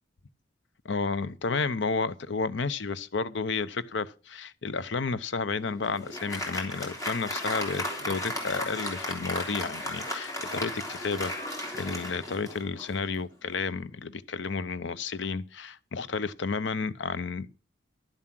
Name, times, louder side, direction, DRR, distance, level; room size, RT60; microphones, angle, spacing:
voice 1, 0.8-17.5, left 4 dB, 70° left, 0.7 m, -32 dB
Applause, 5.5-13.1, left 1 dB, 15° left, 3.2 m, -35 dB
11.0 x 7.5 x 6.0 m
head